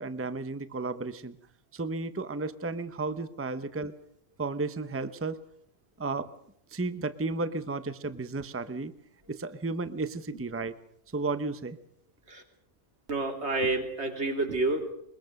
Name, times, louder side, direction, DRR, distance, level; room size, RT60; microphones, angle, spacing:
voice 1, 0.0-1.4 1.7-3.9 4.4-5.4 6.0-6.3 6.7-8.9 9.3-10.7 11.1-11.8, right 3 dB, 15° right, 12 dB, 0.7 m, -33 dB
voice 2, 13.1-14.9, right 2 dB, 65° right, 5 dB, 3.2 m, -29 dB
22.0 x 22.0 x 6.5 m, 0.68 s
omnidirectional pair, 1.2 m